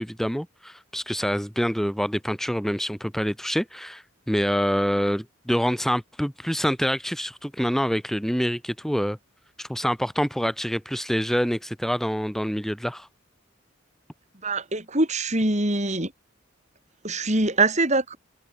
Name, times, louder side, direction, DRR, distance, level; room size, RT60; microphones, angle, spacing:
voice 1, 0.0-9.2 9.6-13.1, equal, ahead, 5.9 m, -26 dB
voice 2, 14.4-16.1 17.0-18.2, right 2 dB, 35° right, 6.2 m, -23 dB
head